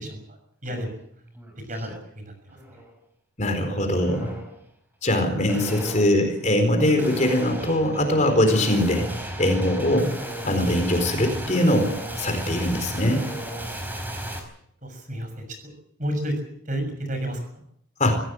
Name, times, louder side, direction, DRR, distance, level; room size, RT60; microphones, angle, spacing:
voice 1, 0.6-0.9 1.7-2.3 14.8-15.7 16.0-16.3 16.7-17.4, right 1 dB, 40° right, 7 dB, 6.6 m, -30 dB
sound 1, 0.7-0.8 1.2-2.0 2.5-2.9 4.0-4.6 5.5-14.4, equal, 10° right, 4.4 m, -35 dB
voice 2, 3.4-4.3 5.0-9.1 9.4-10.1 10.4-13.3 18.0-18.2, left 1 dB, 35° left, 6 dB, 4.3 m, -22 dB
25.0 x 16.5 x 7.7 m, 0.71 s
head